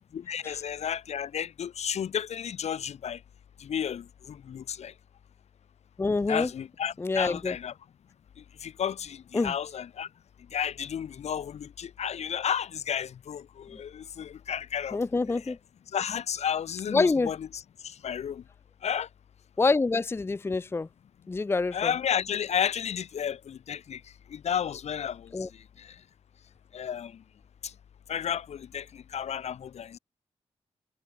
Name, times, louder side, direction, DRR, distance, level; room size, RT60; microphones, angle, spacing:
voice 1, 0.1-3.2 3.6-4.9 6.3-7.7 8.6-10.1 10.5-15.0 15.3-15.5 15.9-18.4 18.8-19.1 21.7-24.0 24.3-25.3 25.8-25.9 26.7-27.2 27.6-27.7 28.1-30.0, left 8 dB, 80° left, 3.1 m, -32 dB
voice 2, 6.0-6.5 7.0-7.6 9.3-9.5 13.7-13.8 14.9-15.6 16.9-17.3 19.6-20.9 21.3-21.9 25.3-25.5, left 3 dB, 20° left, 0.6 m, -26 dB
wide cardioid pair, 130°, 11 cm